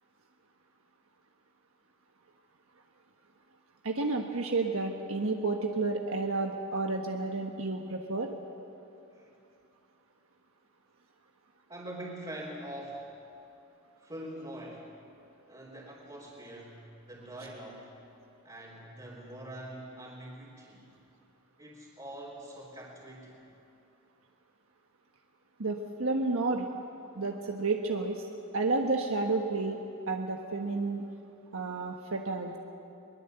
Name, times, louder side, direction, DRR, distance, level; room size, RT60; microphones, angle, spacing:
voice 1, 3.8-8.3 25.6-26.7 27.1-28.2 28.5-29.8 30.1-31.0 31.5-32.5, right 3 dB, 75° right, 2 dB, 1.4 m, -31 dB
voice 2, 11.7-13.2 14.0-14.9 15.5-17.9 18.4-20.9 21.6-23.4, right 1 dB, 25° right, -6 dB, 3.5 m, -44 dB
22.5 x 21.0 x 8.0 m, 2.7 s
head